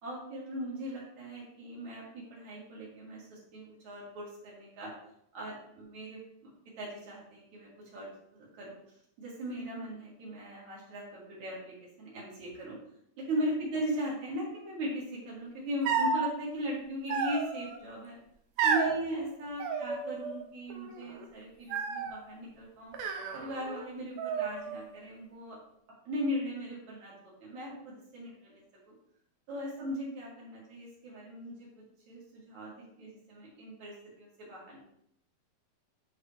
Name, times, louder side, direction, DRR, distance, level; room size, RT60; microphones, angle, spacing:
voice 1, 0.0-4.9 5.3-6.2 6.8-8.8 9.2-12.8 13.2-18.1 18.6-22.9 23.3-25.6 26.1-27.1 27.4-28.6 28.9-29.0 29.5-31.7 32.1-34.8, equal, 55° right, -5 dB, 3.2 m, -38 dB
sound 1, 15.9-16.3 17.1-17.8 18.6-19.0 19.6-20.4 20.7-21.3 21.7-22.2 22.9-23.9 24.2-24.9, right 5 dB, 80° right, 1.5 m, -32 dB
9.5 x 4.1 x 3.1 m, 0.73 s
omnidirectional pair, 4.1 m